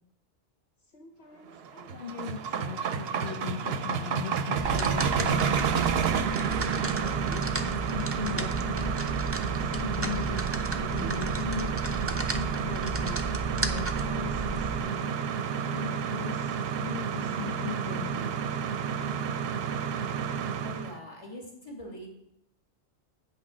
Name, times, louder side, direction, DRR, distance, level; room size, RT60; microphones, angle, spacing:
voice 1, 0.9-5.9 7.0-9.0 9.6-11.8 12.3-13.2 13.5-15.1 15.7-18.4, left 7 dB, 70° left, 2 dB, 1.1 m, -39 dB
sound 1, 1.6-21.0, right 7 dB, 65° right, 0.8 m, -30 dB
sound 2, 4.6-14.8, right 2 dB, 20° right, 0.4 m, -34 dB
voice 2, 20.6-22.1, equal, 30° left, -2 dB, 2.2 m, -42 dB
8.9 x 6.2 x 6.0 m, 0.81 s
omnidirectional pair, 1.1 m